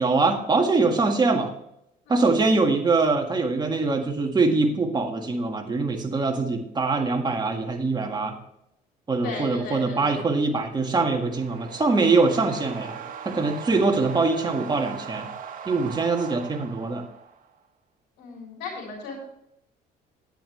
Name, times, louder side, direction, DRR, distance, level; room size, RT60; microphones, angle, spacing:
voice 1, 0.0-1.5 2.1-8.4 9.1-15.3 15.6-17.0, right 3 dB, 25° right, 3 dB, 1.8 m, -23 dB
voice 2, 2.0-2.5 9.2-10.2 18.2-19.2, left 3 dB, 90° left, -1 dB, 3.4 m, -36 dB
sound 1, 10.4-17.5, right 7 dB, 55° right, 1.6 m, -40 dB
10.5 x 10.5 x 3.3 m, 0.79 s
cardioid pair, 110°, 17 cm